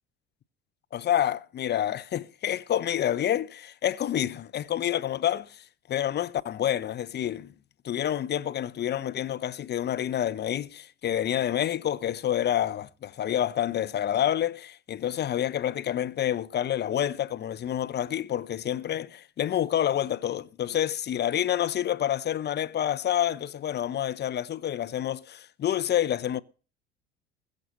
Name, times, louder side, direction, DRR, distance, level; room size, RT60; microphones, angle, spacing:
voice 1, 0.9-5.6 5.9-7.5 7.8-26.4, left 11 dB, 35° left, 0.8 m, -28 dB
21.0 x 7.9 x 4.1 m
figure-of-eight pair, 65°, 31 cm